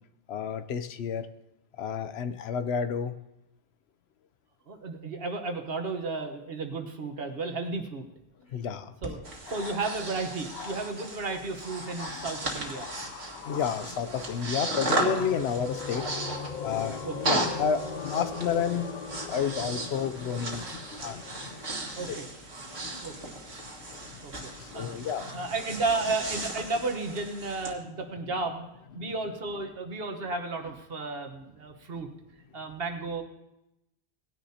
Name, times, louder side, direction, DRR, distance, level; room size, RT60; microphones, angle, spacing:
voice 1, 0.3-1.3 1.8-3.1 8.5-8.9 9.5-9.7 10.5-10.9 11.8-18.9 19.3-22.2 22.8-23.0 23.6-25.4 29.0-29.2, left 7 dB, 80° left, 11 dB, 0.9 m, -32 dB
voice 2, 4.7-8.1 9.0-9.2 9.5-12.9 17.0-17.3 22.0-22.3 23.0-23.3 24.2-24.9 25.2-28.7 28.9-32.1 32.5-33.2, right 3 dB, 65° right, 5 dB, 1.4 m, -33 dB
Breathing, 9.0-27.7, right 2 dB, 85° right, 2.0 m, -36 dB
sound 1, 13.9-22.2, left 5 dB, 50° left, 0.9 m, -40 dB
18.5 x 9.9 x 2.8 m, 0.89 s
omnidirectional pair, 1.1 m